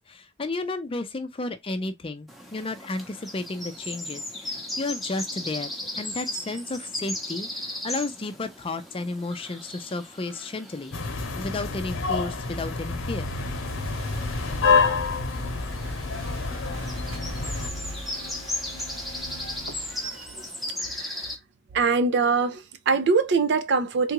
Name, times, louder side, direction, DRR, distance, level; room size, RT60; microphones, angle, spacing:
voice 1, 0.1-11.0 11.4-13.3, left 2 dB, 25° left, 0.5 m, -33 dB
sound 1, 2.3-21.4, left 1 dB, ahead, 0.8 m, -37 dB
sound 2, 10.9-17.7, left 4 dB, 85° left, 0.8 m, -27 dB
sound 3, 13.6-20.5, equal, 85° right, 1.4 m, -38 dB
voice 2, 20.9-21.2 21.7-24.1, right 4 dB, 60° right, 0.5 m, -23 dB
3.7 x 2.4 x 2.9 m
head